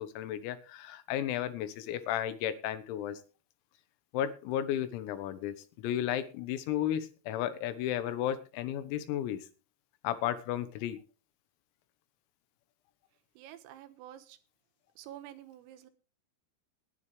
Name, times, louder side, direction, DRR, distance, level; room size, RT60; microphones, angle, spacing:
voice 1, 0.0-3.2 4.1-9.5 10.0-11.0, left 11 dB, 90° left, 12 dB, 4.0 m, -33 dB
voice 2, 13.4-14.4 15.0-15.9, right 12 dB, 85° right, 9 dB, 3.9 m, -49 dB
19.5 x 10.5 x 3.4 m, 0.35 s
omnidirectional pair, 6.0 m